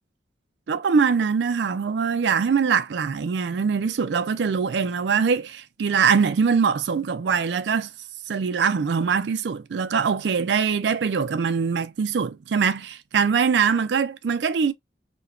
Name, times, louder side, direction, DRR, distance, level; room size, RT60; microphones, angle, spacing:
voice 1, 0.7-7.9 8.3-14.7, right 6 dB, 85° right, 0.4 m, -23 dB
2.8 x 2.2 x 2.4 m
head